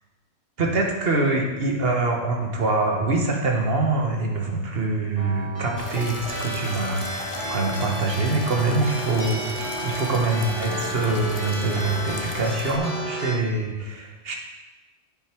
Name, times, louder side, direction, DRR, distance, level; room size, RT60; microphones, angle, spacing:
voice 1, 0.6-14.3, right 3 dB, 55° right, 1 dB, 1.5 m, -24 dB
sound 1, 5.2-13.3, right 1 dB, 80° right, 2.9 m, -32 dB
sound 2, 5.8-12.8, left 3 dB, 30° left, 0.7 m, -37 dB
10.5 x 5.5 x 4.5 m, 1.2 s
omnidirectional pair, 1.2 m